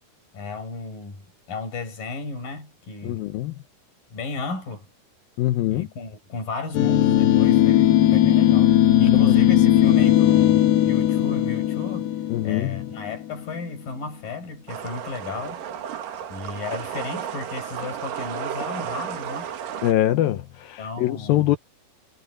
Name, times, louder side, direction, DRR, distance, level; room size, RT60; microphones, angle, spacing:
voice 1, 0.3-3.3 4.1-4.9 5.7-8.7 9.0-12.1 12.4-15.6 16.3-19.5 20.8-21.5, left 3 dB, 45° left, 8.7 m, -34 dB
voice 2, 3.0-3.6 5.4-5.9 9.3-9.4 12.3-12.9 19.8-21.6, left 14 dB, 90° left, 2.0 m, -23 dB
sound 1, 6.7-13.4, left 12 dB, 70° left, 3.1 m, -18 dB
sound 2, 14.7-19.9, right 9 dB, 60° right, 2.9 m, -33 dB
omnidirectional pair, 5.4 m